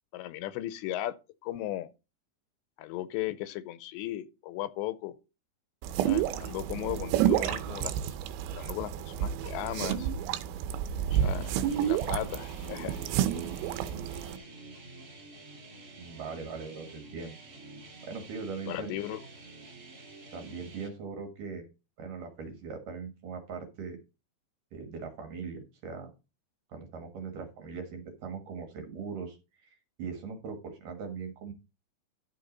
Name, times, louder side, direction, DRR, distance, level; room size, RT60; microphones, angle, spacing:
voice 1, 0.1-1.2 1.4-1.9 2.8-5.2 6.0-7.9 8.5-10.1 11.1-13.0 18.7-19.2, left 14 dB, 85° left, 2.8 m, -36 dB
sound 1, 5.8-14.4, right 10 dB, 85° right, 3.1 m, -30 dB
sound 2, 11.1-20.9, right 2 dB, 35° right, 1.5 m, -48 dB
voice 2, 16.0-17.4 18.0-18.9 20.3-21.7 22.0-24.0 24.7-26.1 26.7-29.4 29.6-31.5, right 5 dB, 60° right, 2.6 m, -40 dB
12.0 x 6.6 x 3.9 m
omnidirectional pair, 5.2 m